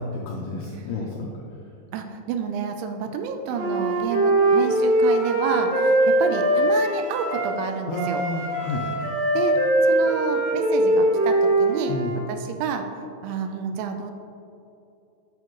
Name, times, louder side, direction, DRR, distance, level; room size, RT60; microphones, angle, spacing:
voice 1, 0.1-1.3 7.9-8.8 11.9-12.1, left 3 dB, 85° left, -1 dB, 2.2 m, -30 dB
voice 2, 1.9-8.2 9.3-12.0 12.3-12.8 13.2-14.1, right 6 dB, 85° right, 6 dB, 2.9 m, -29 dB
Wind instrument woodwind instrument, 3.5-7.6 7.9-12.2, right 1 dB, 65° right, 1.8 m, -21 dB
10.5 x 6.4 x 3.0 m, 2.6 s
omnidirectional pair, 5.4 m